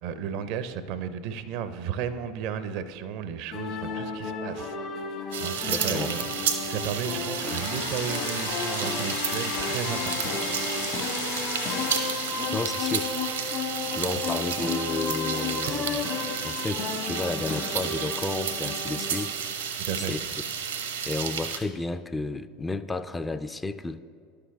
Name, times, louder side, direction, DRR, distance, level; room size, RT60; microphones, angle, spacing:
voice 1, 0.0-4.8 5.4-6.2 6.6-10.4 14.1-14.2 15.6-15.7 19.8-20.1, right 8 dB, 60° right, 12 dB, 0.5 m, -34 dB
sound 1, 3.5-19.3, left 5 dB, 55° left, 1.2 m, -33 dB
sound 2, 5.3-21.6, right 7 dB, 85° right, 0.8 m, -32 dB
voice 2, 5.7-6.1 12.5-13.1 13.9-16.0 16.4-19.8 20.1-20.2 21.1-24.0, left 2 dB, 15° left, 12 dB, 0.3 m, -32 dB
sound 3, 7.4-15.5, left 5 dB, 75° left, 0.9 m, -37 dB
11.0 x 6.6 x 3.5 m, 2.2 s
hypercardioid pair, 80°, 0 cm